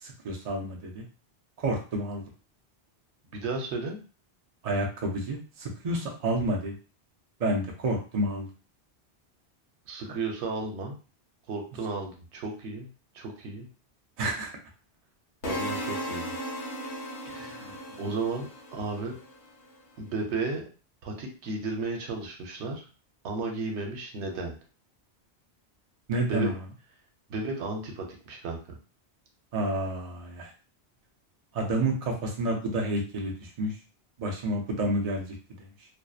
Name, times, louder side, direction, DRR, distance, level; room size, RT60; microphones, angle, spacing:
voice 1, 0.0-1.1 1.6-2.2 4.6-6.7 7.4-8.5 14.2-14.5 26.1-26.6 29.5-30.5 31.5-33.7 34.2-35.7, right 1 dB, 45° right, 0 dB, 0.6 m, -29 dB
voice 2, 3.3-4.0 9.9-11.0 11.5-12.9 13.1-13.7 15.4-16.3 17.3-19.2 20.0-20.6 21.0-22.9 23.2-24.5 26.3-26.5 27.3-28.6, right 3 dB, 90° right, 2 dB, 0.9 m, -34 dB
sound 1, 15.4-19.5, equal, 60° left, 0.7 m, -36 dB
2.6 x 2.1 x 2.3 m, 0.35 s
omnidirectional pair, 1.1 m